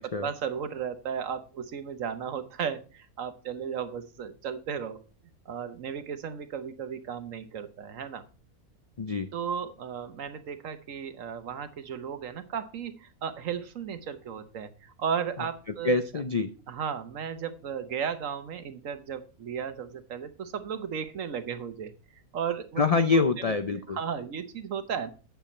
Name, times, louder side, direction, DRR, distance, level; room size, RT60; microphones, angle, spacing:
voice 1, 0.0-5.0 5.5-8.2 9.3-16.2 16.7-21.9 22.3-22.9 23.9-25.1, right 7 dB, 65° right, 11 dB, 1.3 m, -35 dB
voice 2, 9.0-9.3 15.8-16.5 22.8-24.0, left 4 dB, 60° left, 9 dB, 0.3 m, -25 dB
9.2 x 7.0 x 4.2 m, 0.36 s
omnidirectional pair, 1.5 m